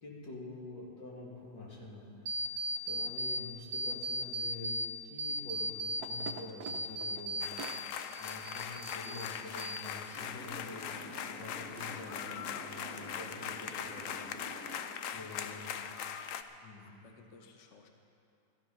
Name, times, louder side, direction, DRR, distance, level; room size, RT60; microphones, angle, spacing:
voice 1, 0.0-2.5 2.8-4.8 5.0-7.5 8.1-14.3 15.0-15.8 16.6-16.9, left 2 dB, 85° left, -4 dB, 3.2 m, -47 dB
sound 1, 2.3-3.4 3.7-4.9 5.2-7.8 8.1-9.3 9.6-10.2, right 1 dB, 65° right, 1.2 m, -36 dB
voice 2, 5.5-5.9 15.1-15.7 16.8-17.9, left 5 dB, 50° left, 4 dB, 1.2 m, -56 dB
sound 2, 7.4-16.4, left 8 dB, 70° left, 0.8 m, -41 dB
sound 3, 10.1-14.8, equal, 10° left, 2.2 m, -49 dB
14.0 x 13.5 x 5.8 m, 2.7 s
omnidirectional pair, 1.9 m